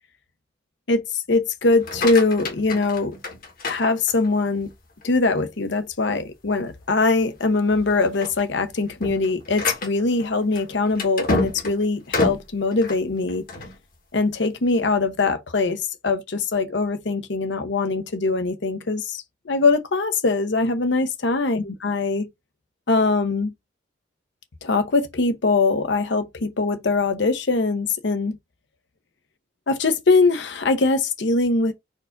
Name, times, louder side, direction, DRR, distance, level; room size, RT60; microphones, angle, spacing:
voice 1, 0.9-3.2 3.7-4.7 5.0-13.4 14.1-22.3 22.9-23.5 24.6-28.4 29.7-31.7, left 3 dB, 60° left, 0.7 m, -22 dB
sound 1, 1.7-4.5 5.0-5.5 5.9-6.0 6.4-6.6 7.3-7.5 7.9-13.8, left 2 dB, 45° left, 1.3 m, -29 dB
4.6 x 2.5 x 4.5 m
head